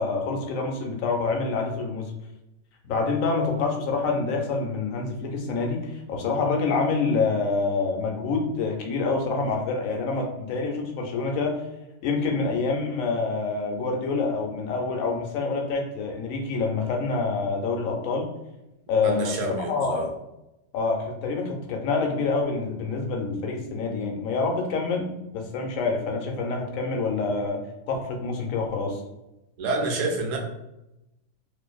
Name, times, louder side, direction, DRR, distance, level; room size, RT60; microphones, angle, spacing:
voice 1, 0.0-2.1 2.8-11.6 12.0-18.3 18.9-20.0 20.7-25.1 25.3-27.6 27.9-29.0, left 4 dB, 80° left, 1 dB, 1.0 m, -27 dB
voice 2, 19.0-20.1 29.6-30.4, right 2 dB, 75° right, 1 dB, 0.9 m, -27 dB
2.5 x 2.5 x 2.3 m, 0.92 s
omnidirectional pair, 1.4 m